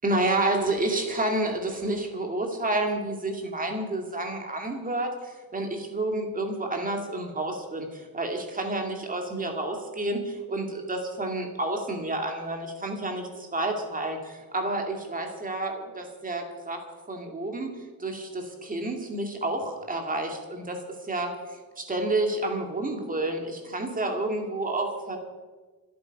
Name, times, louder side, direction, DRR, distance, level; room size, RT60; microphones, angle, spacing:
voice 1, 0.0-17.7 18.0-25.2, right 2 dB, 25° right, 3 dB, 2.4 m, -30 dB
26.0 x 8.7 x 5.4 m, 1.3 s
wide cardioid pair, 175°, 35 cm